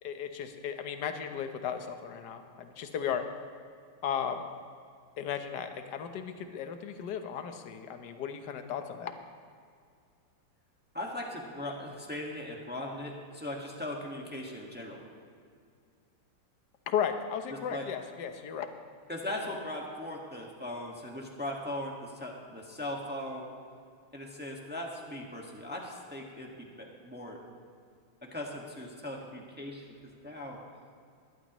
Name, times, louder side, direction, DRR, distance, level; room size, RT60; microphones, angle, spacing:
voice 1, 0.0-3.3 4.0-4.4 5.2-9.1 16.9-18.7, left 8 dB, 60° left, 7 dB, 1.4 m, -35 dB
voice 2, 10.9-15.0 17.5-17.9 19.1-23.5 24.1-27.4 28.2-30.6, left 1 dB, 5° right, -1 dB, 1.3 m, -39 dB
21.0 x 14.0 x 3.1 m, 2.3 s
omnidirectional pair, 2.4 m